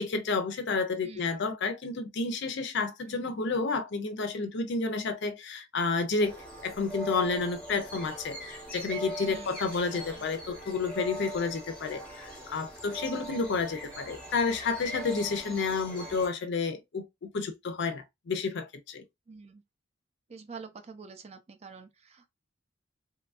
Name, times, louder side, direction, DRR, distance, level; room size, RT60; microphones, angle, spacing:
voice 1, 0.0-6.4 6.6-19.0, left 4 dB, 60° left, 0.5 m, -30 dB
voice 2, 1.0-1.4 3.1-3.5 9.2-9.6 9.9-10.2 13.1-13.4 19.3-19.6 20.3-22.3, right 5 dB, 30° right, 0.4 m, -47 dB
sound 1, 6.2-16.3, right 1 dB, 5° left, 0.9 m, -41 dB
2.9 x 2.3 x 2.4 m
head